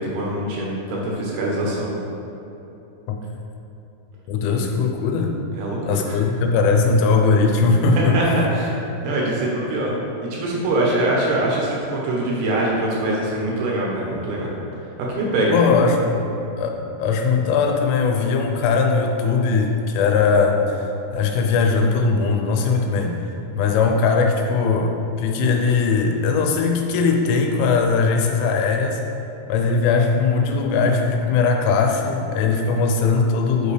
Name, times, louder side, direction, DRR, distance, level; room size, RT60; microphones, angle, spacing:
voice 1, 0.0-1.9 4.4-4.6 5.5-6.2 8.1-8.3 8.5-8.7 9.0-14.5 15.1-15.6, right 1 dB, 75° right, -4 dB, 2.5 m, -23 dB
voice 2, 4.3-5.4 5.9-8.5 15.5-23.3 23.5-29.0 29.5-33.7, left 4 dB, 90° left, 3 dB, 3.2 m, -20 dB
8.4 x 5.3 x 3.2 m, 3.0 s
omnidirectional pair, 5.5 m